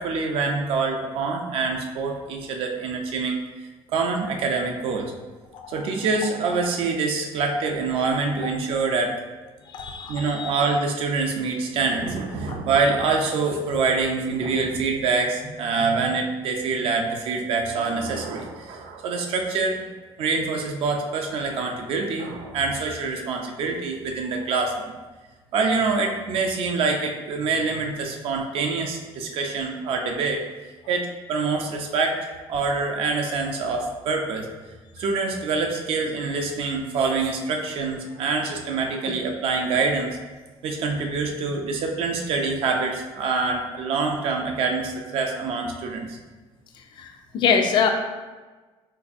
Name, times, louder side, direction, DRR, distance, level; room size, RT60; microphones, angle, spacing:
voice 1, 0.0-3.4 3.9-5.1 5.7-9.1 10.1-19.8 20.2-24.9 25.5-34.5 35.0-40.2 40.6-46.2, right 4 dB, 60° right, 2 dB, 0.4 m, -25 dB
voice 2, 9.7-10.5 39.1-39.2 47.0-47.9, left 6 dB, 50° left, 5 dB, 0.4 m, -24 dB
3.9 x 2.6 x 2.5 m, 1.3 s
cardioid pair, 160°, 11 cm